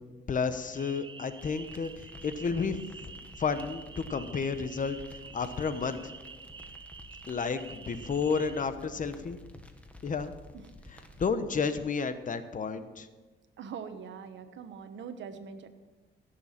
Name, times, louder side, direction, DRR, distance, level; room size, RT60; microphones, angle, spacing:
voice 1, 0.3-6.0 7.3-9.4 10.0-10.3 10.9-13.1, left 5 dB, 40° left, 10 dB, 1.1 m, -32 dB
sound 1, 0.7-8.6, right 4 dB, 25° right, 0.7 m, -48 dB
sound 2, 1.4-11.2, left 1 dB, 5° left, 1.5 m, -51 dB
voice 2, 13.6-15.7, right 6 dB, 70° right, 8 dB, 1.2 m, -42 dB
16.0 x 7.0 x 5.8 m, 1.3 s
cardioid pair, 90°, 20 cm